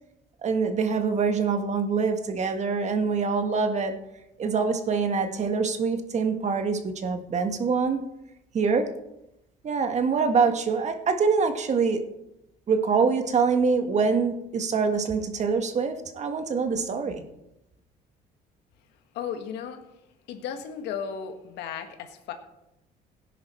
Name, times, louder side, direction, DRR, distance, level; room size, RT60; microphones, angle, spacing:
voice 1, 0.4-4.0 4.4-8.0 8.5-8.9 9.6-12.0 12.7-17.2, right 5 dB, 45° right, 6 dB, 1.6 m, -25 dB
voice 2, 19.1-19.8 20.3-22.3, left 7 dB, 85° left, 6 dB, 1.8 m, -35 dB
17.0 x 10.0 x 4.5 m, 0.91 s
cardioid pair, 110°, 17 cm